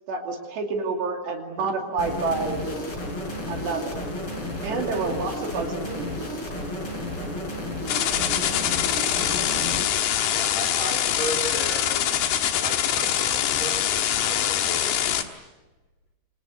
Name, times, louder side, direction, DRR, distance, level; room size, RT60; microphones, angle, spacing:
voice 1, 0.1-2.8 3.5-4.0 4.6-6.1, right 4 dB, 60° right, 2 dB, 4.4 m, -28 dB
sound 1, 2.0-9.8, left 1 dB, 25° left, 6.0 m, -32 dB
sound 2, 7.9-15.2, left 10 dB, 65° left, 3.0 m, -24 dB
voice 2, 10.3-12.3 12.6-14.9, equal, 40° left, 4 dB, 3.1 m, -35 dB
27.5 x 27.0 x 8.0 m, 1.2 s
omnidirectional pair, 5.9 m